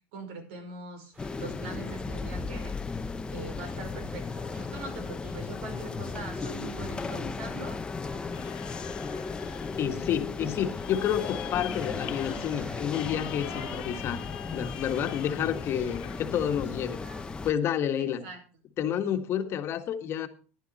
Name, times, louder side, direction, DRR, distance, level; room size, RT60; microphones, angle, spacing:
voice 1, 0.1-2.7 3.3-7.8 18.0-18.4, right 3 dB, 80° right, 5.5 m, -42 dB
sound 1, 1.1-17.3, right 2 dB, 30° right, 5.8 m, -54 dB
sound 2, 1.2-17.5, left 4 dB, 15° left, 0.8 m, -36 dB
sound 3, 8.3-16.2, left 17 dB, 80° left, 1.2 m, -44 dB
voice 2, 9.8-14.2 14.5-17.0 17.4-18.3 18.8-20.3, left 9 dB, 40° left, 1.5 m, -29 dB
15.0 x 11.0 x 4.1 m
supercardioid pair, 135°, 6 cm